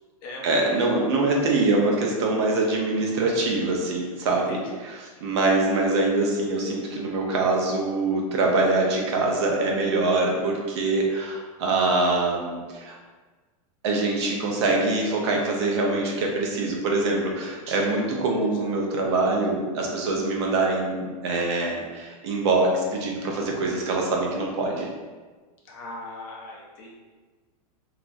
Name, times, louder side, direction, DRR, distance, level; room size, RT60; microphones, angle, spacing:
voice 1, 0.4-4.6 5.2-13.0 13.8-24.9, right 2 dB, 45° right, 0 dB, 0.5 m, -24 dB
voice 2, 25.6-26.9, left 2 dB, 35° left, -2 dB, 0.5 m, -39 dB
2.9 x 2.3 x 2.5 m, 1.4 s
supercardioid pair, 175°, 19 cm